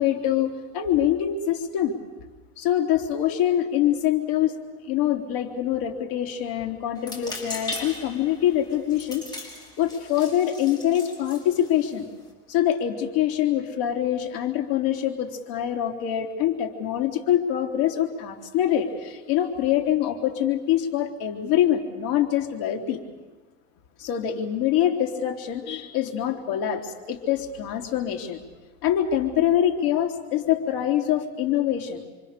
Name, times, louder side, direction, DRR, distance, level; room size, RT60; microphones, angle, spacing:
voice 1, 0.0-2.0 2.6-4.6 4.8-9.5 9.8-12.1 12.5-23.0 24.0-28.4 28.8-32.0, left 11 dB, 60° left, 4 dB, 3.6 m, -24 dB
sound 1, 7.0-12.3, left 2 dB, 10° left, 5.8 m, -39 dB
27.5 x 25.0 x 6.8 m, 1.2 s
supercardioid pair, 145°, 33 cm